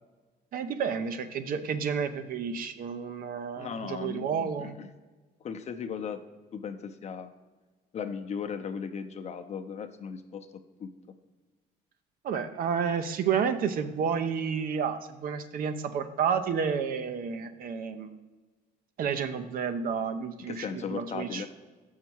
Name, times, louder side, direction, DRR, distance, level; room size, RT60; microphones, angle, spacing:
voice 1, 0.5-4.8 12.2-18.2 19.0-21.4, right 6 dB, 60° right, 10 dB, 0.6 m, -30 dB
voice 2, 3.5-4.9 5.4-6.2 6.5-7.3 7.9-10.5 10.8-10.9 20.5-21.5, left 6 dB, 40° left, 8 dB, 0.6 m, -37 dB
6.8 x 5.6 x 4.6 m, 1.3 s
cardioid pair, 110°, 17 cm